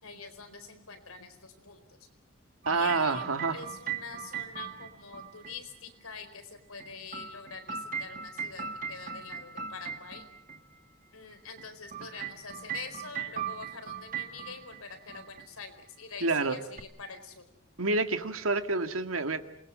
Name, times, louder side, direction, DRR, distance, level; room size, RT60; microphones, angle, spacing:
voice 1, 0.0-1.8 2.7-10.3 11.1-17.4, left 5 dB, 90° left, 8 dB, 4.5 m, -45 dB
sound 1, 2.6-5.6 6.8-10.6 11.6-14.8 15.1-15.5 16.8-16.9, right 7 dB, 40° right, 1.9 m, -39 dB
voice 2, 2.7-3.6 16.2-16.6 17.8-19.4, right 3 dB, 80° right, 8 dB, 2.1 m, -28 dB
28.0 x 21.0 x 7.7 m, 0.73 s
head